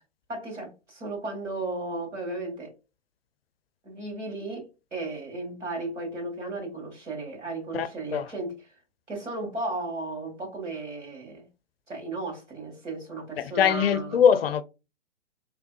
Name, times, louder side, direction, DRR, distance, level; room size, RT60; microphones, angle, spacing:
voice 1, 0.3-2.7 3.8-8.6 9.1-11.5 11.9-14.2, right 2 dB, 85° right, 2.0 m, -35 dB
voice 2, 7.7-8.2 13.4-14.6, left 8 dB, 55° left, 0.5 m, -22 dB
3.4 x 3.3 x 2.4 m
figure-of-eight pair, 120°, 35 cm